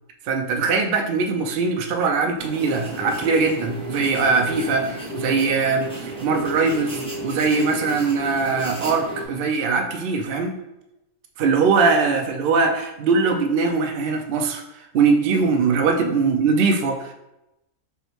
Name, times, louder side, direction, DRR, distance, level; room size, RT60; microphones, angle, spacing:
voice 1, 0.3-10.6 11.4-14.6 14.9-17.1, right 4 dB, 65° right, 3 dB, 0.5 m, -21 dB
sound 1, 2.4-9.2, right 1 dB, 5° left, 0.4 m, -33 dB
5.5 x 2.1 x 3.1 m, 0.91 s
omnidirectional pair, 1.5 m